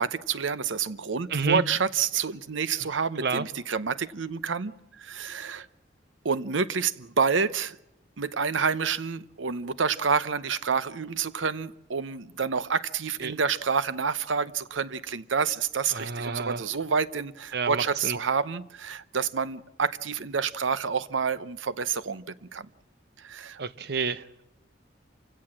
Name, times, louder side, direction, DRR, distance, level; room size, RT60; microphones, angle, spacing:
voice 1, 0.0-5.7 6.2-7.8 8.2-22.7 23.2-23.6, right 5 dB, 90° right, 0.8 m, -28 dB
voice 2, 1.3-1.6 3.2-3.5 13.2-13.3 15.9-16.6 17.5-18.2 23.6-24.5, right 4 dB, 55° right, 0.9 m, -29 dB
27.0 x 16.5 x 7.4 m
head